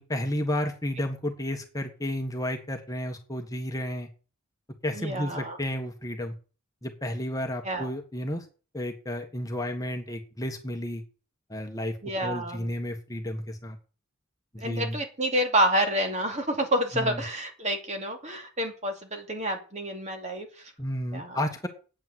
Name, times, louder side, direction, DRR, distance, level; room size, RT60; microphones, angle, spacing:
voice 1, 0.0-4.1 4.8-6.3 6.8-8.5 8.7-11.0 11.5-11.9 12.2-13.8 14.5-15.0 16.9-17.2 20.8-21.7, left 1 dB, 15° left, 4 dB, 1.4 m, -32 dB
voice 2, 4.9-5.6 7.6-7.9 12.0-12.7 14.6-20.7 21.1-21.4, right 1 dB, 35° right, 4 dB, 2.6 m, -29 dB
8.9 x 8.9 x 7.8 m, 0.36 s
head